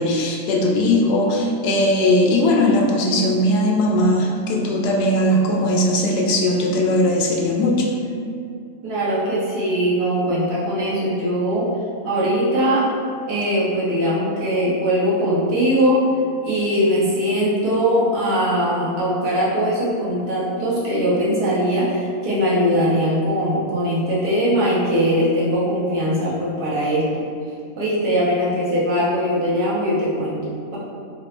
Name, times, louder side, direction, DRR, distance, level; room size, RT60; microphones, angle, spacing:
voice 1, 0.0-7.9, left 1 dB, 85° left, -1 dB, 1.2 m, -19 dB
voice 2, 8.8-11.7 12.0-12.9 13.3-16.0 16.4-27.2 27.8-30.8, equal, 70° right, -8 dB, 1.5 m, -21 dB
3.8 x 2.1 x 4.3 m, 2.4 s
omnidirectional pair, 1.7 m